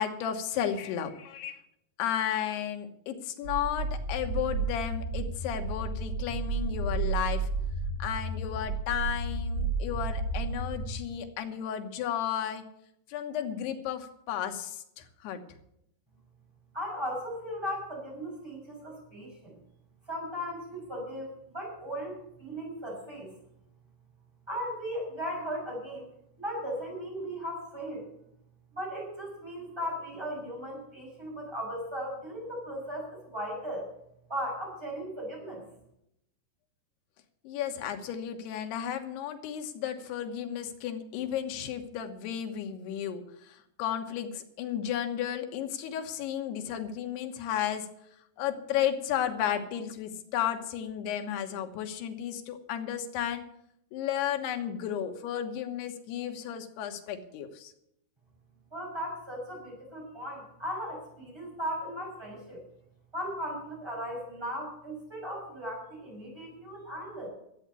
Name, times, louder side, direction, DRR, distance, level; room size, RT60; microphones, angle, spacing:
voice 1, 0.0-1.6 2.0-7.5 8.0-12.6 13.1-15.4 37.5-47.9 48.4-53.5 53.9-57.7, left 9 dB, 85° left, 6 dB, 3.3 m, -33 dB
sound 1, 3.4-10.9, right 3 dB, 35° right, 3.9 m, -32 dB
voice 2, 16.7-19.5 20.1-23.3 24.5-26.1 26.4-28.1 28.7-33.9 34.3-35.6 58.7-62.6 63.1-67.3, equal, 5° right, -2 dB, 6.1 m, -37 dB
13.0 x 8.4 x 8.3 m, 0.77 s
omnidirectional pair, 4.5 m